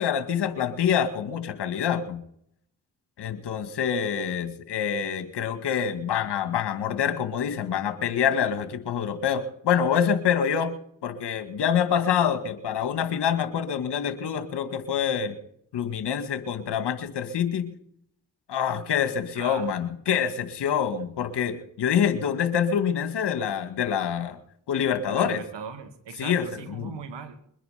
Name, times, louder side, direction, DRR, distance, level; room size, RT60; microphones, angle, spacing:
voice 1, 0.0-2.2 3.2-10.7 11.0-15.3 15.7-17.7 18.5-24.4 24.7-25.4 26.2-26.9, left 8 dB, 70° left, 9 dB, 2.1 m, -26 dB
voice 2, 19.3-19.7 25.0-27.4, right 6 dB, 80° right, 11 dB, 2.1 m, -39 dB
22.5 x 10.0 x 5.1 m, 0.68 s
supercardioid pair, 45°, 42 cm